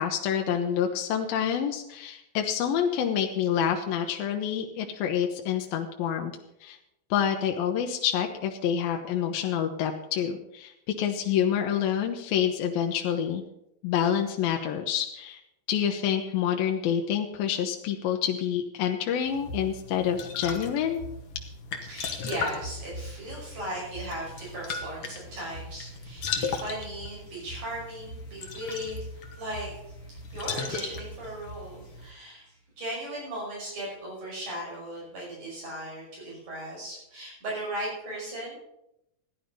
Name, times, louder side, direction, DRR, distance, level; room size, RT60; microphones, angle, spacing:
voice 1, 0.0-6.3 6.6-6.8 7.1-13.4 13.8-15.4 15.7-21.0, left 9 dB, 80° left, 3 dB, 2.7 m, -27 dB
sound 1, 19.3-32.1, left 4 dB, 55° left, 1.7 m, -37 dB
voice 2, 21.9-38.6, right 1 dB, 55° right, -5 dB, 7.1 m, -37 dB
14.0 x 10.0 x 5.3 m, 0.83 s
omnidirectional pair, 4.2 m